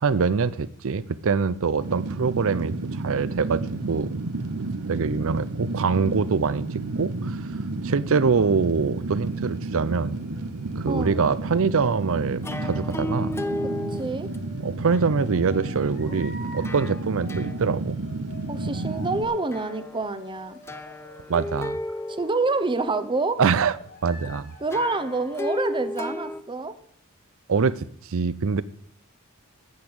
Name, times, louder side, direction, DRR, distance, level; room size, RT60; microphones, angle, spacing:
voice 1, 0.0-4.2 4.9-7.5 7.8-10.2 10.8-13.3 14.6-18.0 21.3-21.8 23.4-23.8 24.0-24.5 27.5-28.6, right 5 dB, 65° right, 18 dB, 0.6 m, -24 dB
Fire, 1.8-19.3, right 2 dB, 85° right, 0.9 m, -31 dB
sound 1, 9.2-11.9 12.9-22.4 22.9-25.5, left 2 dB, 50° left, 2.8 m, -48 dB
voice 2, 10.8-11.2 13.9-14.3 18.5-20.6 22.1-23.4 24.6-26.8, right 3 dB, 20° right, 11 dB, 0.8 m, -27 dB
sound 2, 12.4-14.0 14.3-16.2 16.6-17.0 17.3-17.6 18.5-18.6 19.0-19.1 19.5-20.1 20.7-23.4 24.7-26.4, left 1 dB, 10° left, 0.6 m, -33 dB
9.6 x 8.1 x 8.7 m, 0.64 s
head